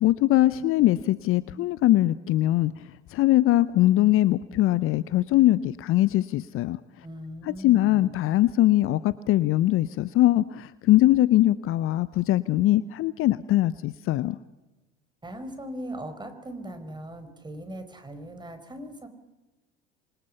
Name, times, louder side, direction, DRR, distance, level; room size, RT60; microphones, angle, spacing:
voice 1, 0.0-2.7 3.1-6.8 7.5-14.4, left 15 dB, 40° left, 17 dB, 0.8 m, -22 dB
voice 2, 7.0-8.1 15.2-19.1, right 1 dB, 15° right, 8 dB, 4.9 m, -39 dB
28.5 x 25.5 x 5.6 m, 1.1 s
figure-of-eight pair, 70°, 33 cm